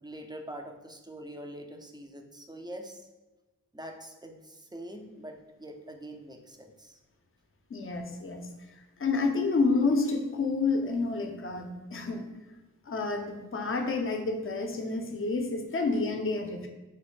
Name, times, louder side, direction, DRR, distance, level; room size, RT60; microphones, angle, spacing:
voice 1, 0.0-3.1 3.7-7.0, right 1 dB, 10° right, 3 dB, 0.4 m, -44 dB
voice 2, 7.7-8.5 9.0-12.2 12.9-16.7, left 3 dB, 40° left, 4 dB, 0.5 m, -29 dB
4.0 x 2.1 x 3.1 m, 1.1 s
cardioid pair, 45°, 35 cm